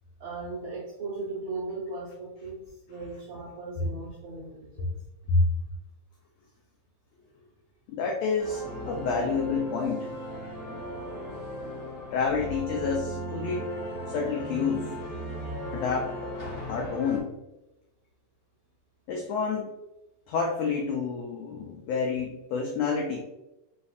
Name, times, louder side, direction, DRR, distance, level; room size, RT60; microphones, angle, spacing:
voice 1, 0.2-4.9, right 3 dB, 75° right, -7 dB, 1.3 m, -37 dB
voice 2, 7.9-10.1 12.1-13.6 14.1-14.9 15.7-16.3 16.7-17.3 19.1-19.7 20.3-23.2, left 5 dB, 85° left, 1 dB, 1.5 m, -29 dB
sound 1, 8.4-17.2, equal, 60° left, 0.7 m, -36 dB
4.3 x 4.1 x 2.4 m, 0.97 s
omnidirectional pair, 3.6 m